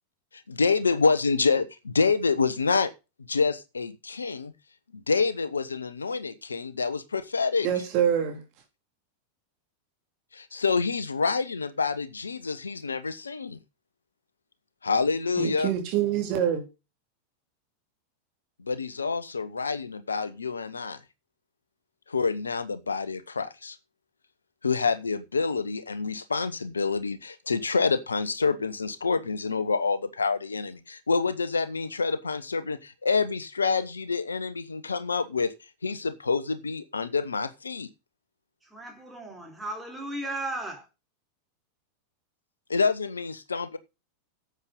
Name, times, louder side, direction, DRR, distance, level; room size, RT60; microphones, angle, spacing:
voice 1, 0.5-2.9 3.3-4.5 4.9-7.7 10.3-13.6 14.8-15.7 18.7-21.0 22.1-23.8 24.6-35.5 35.8-37.9 42.7-43.8, left 4 dB, 75° left, 1.1 m, -27 dB
voice 2, 7.6-8.4 15.4-16.6, right 9 dB, 40° right, 3.4 m, -25 dB
voice 3, 38.6-40.9, right 1 dB, 5° right, 4.7 m, -35 dB
12.0 x 7.9 x 5.5 m
figure-of-eight pair, 90°, 0 cm